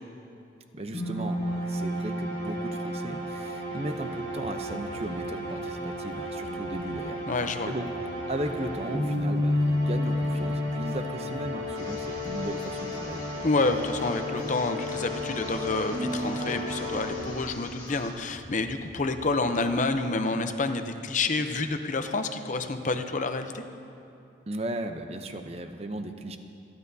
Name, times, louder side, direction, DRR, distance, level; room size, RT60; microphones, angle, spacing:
voice 1, 0.7-7.2 7.6-7.9 8.3-13.2 24.5-26.4, right 1 dB, 35° right, 7 dB, 0.6 m, -36 dB
sound 1, 0.9-17.7, left 1 dB, 65° right, 3.0 m, -32 dB
sound 2, 3.9-19.9, equal, 15° right, 2.5 m, -49 dB
voice 2, 7.3-7.7 13.4-23.6, left 3 dB, 40° left, 7 dB, 0.6 m, -28 dB
sound 3, 11.7-18.2, left 2 dB, 20° left, 1.8 m, -46 dB
27.0 x 10.5 x 2.7 m, 2.6 s
head